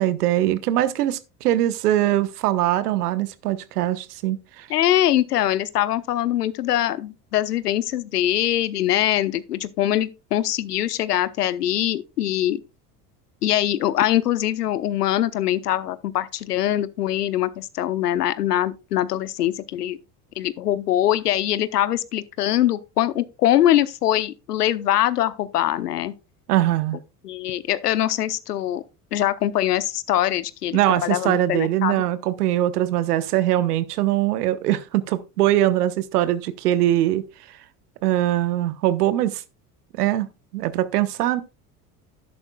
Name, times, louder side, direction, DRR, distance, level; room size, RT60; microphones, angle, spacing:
voice 1, 0.0-4.7 26.5-27.0 30.7-37.2 38.0-39.4 40.0-40.3 40.5-41.4, right 13 dB, 80° right, 1.1 m, -22 dB
voice 2, 4.7-12.6 13.4-20.0 20.4-26.1 27.2-28.8 29.1-32.0, left 12 dB, 90° left, 0.8 m, -23 dB
12.0 x 10.5 x 2.3 m
hypercardioid pair, 75°, 46 cm